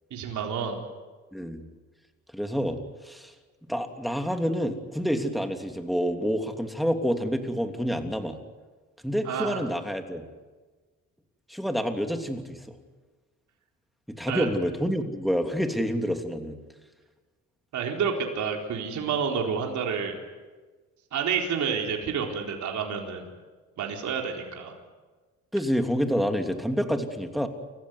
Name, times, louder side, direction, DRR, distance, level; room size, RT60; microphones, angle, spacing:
voice 1, 0.1-0.8 9.2-9.6 14.3-14.5 17.7-20.2 21.1-23.3 23.8-24.7, right 6 dB, 70° right, 2 dB, 4.1 m, -29 dB
voice 2, 1.3-1.6 2.3-2.8 3.0-3.3 3.7-8.4 9.0-10.2 11.5-12.7 14.1-16.6 25.5-27.5, equal, ahead, 5 dB, 3.0 m, -28 dB
29.5 x 15.0 x 9.7 m, 1.3 s
cardioid pair, 90°, 30 cm